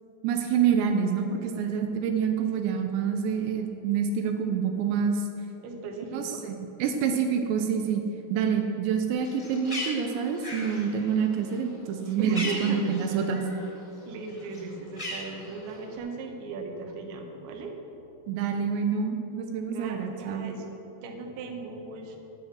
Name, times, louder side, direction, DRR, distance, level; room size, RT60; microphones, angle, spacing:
voice 1, 0.2-5.3 6.1-8.0 8.3-13.4 18.3-20.5, right 7 dB, 90° right, 4 dB, 3.0 m, -27 dB
voice 2, 5.6-6.5 12.2-13.0 14.1-17.7 19.7-20.6 21.0-22.2, right 3 dB, 70° right, 3 dB, 3.0 m, -37 dB
Bird, 9.1-13.7 14.0-15.9, left 1 dB, 25° left, 0.9 m, -38 dB
18.5 x 6.5 x 6.2 m, 3.0 s
omnidirectional pair, 5.1 m